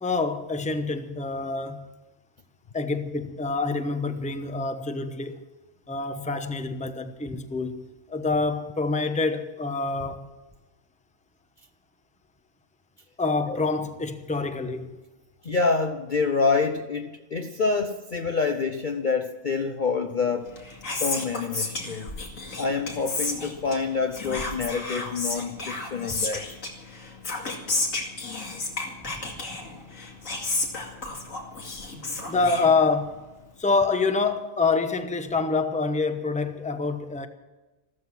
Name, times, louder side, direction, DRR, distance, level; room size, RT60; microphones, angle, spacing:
voice 1, 0.0-1.9 2.7-5.4 5.9-10.3 13.2-14.9 32.2-33.2 33.6-37.3, left 4 dB, 5° left, 0.8 m, -26 dB
voice 2, 15.4-20.5 21.0-22.1 22.6-26.5, left 4 dB, 45° left, 0.7 m, -27 dB
Whispering, 20.4-33.2, left 2 dB, 70° left, 2.7 m, -33 dB
15.0 x 13.5 x 6.0 m
omnidirectional pair, 1.4 m